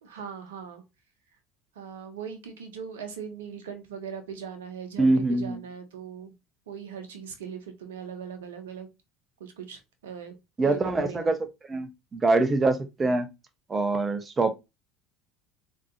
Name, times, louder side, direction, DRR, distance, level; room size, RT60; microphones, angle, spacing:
voice 1, 0.0-0.8 1.7-6.3 6.7-8.9 9.4-10.4 10.6-11.3, right 7 dB, 85° right, 1.0 m, -40 dB
voice 2, 5.0-5.6 10.6-11.4 11.7-13.3 13.7-14.5, right 2 dB, 25° right, 1.0 m, -24 dB
3.8 x 3.1 x 2.7 m
hypercardioid pair, 75°, 0 cm